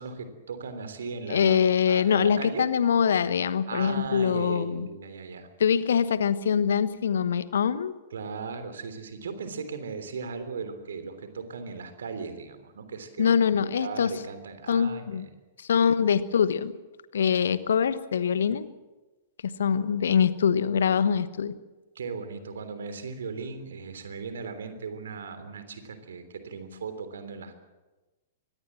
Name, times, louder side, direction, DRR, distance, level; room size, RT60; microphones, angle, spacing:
voice 1, 0.0-2.7 3.7-5.5 8.1-15.3 21.9-27.6, right 5 dB, 60° right, 10 dB, 3.3 m, -37 dB
voice 2, 1.3-4.9 5.6-7.9 13.2-14.1 14.7-15.3 15.6-16.7 17.1-18.7 19.6-21.5, left 7 dB, 60° left, 15 dB, 1.2 m, -24 dB
24.5 x 19.5 x 7.5 m, 1.1 s
figure-of-eight pair, 105°, 0 cm